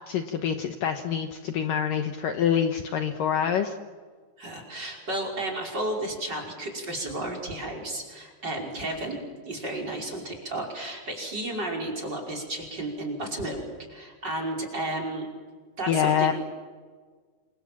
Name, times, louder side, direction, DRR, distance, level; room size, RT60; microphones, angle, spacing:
voice 1, 0.1-3.7 15.9-16.3, left 8 dB, 85° left, 5 dB, 1.9 m, -26 dB
voice 2, 4.4-9.2 9.5-13.6 13.9-15.3 15.8-16.3, right 1 dB, 20° right, 3 dB, 5.4 m, -32 dB
28.5 x 27.0 x 7.6 m, 1.5 s
omnidirectional pair, 5.7 m